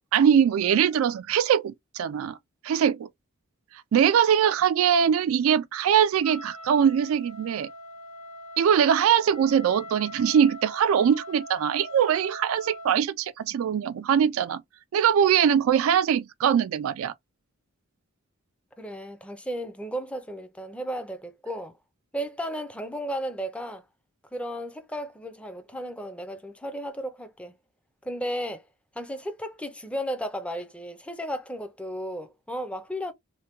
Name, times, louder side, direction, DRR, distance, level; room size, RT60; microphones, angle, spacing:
voice 1, 0.1-2.4 2.6-3.1 3.9-7.7 8.6-14.6 14.9-17.1, right 8 dB, 75° right, 0.3 m, -22 dB
Wind instrument woodwind instrument, 6.2-13.0, equal, 85° left, 0.9 m, -42 dB
voice 2, 18.8-21.7 22.1-23.8 24.3-27.6 28.0-28.6 29.0-33.1, equal, 5° left, 0.5 m, -34 dB
3.3 x 2.2 x 2.9 m
head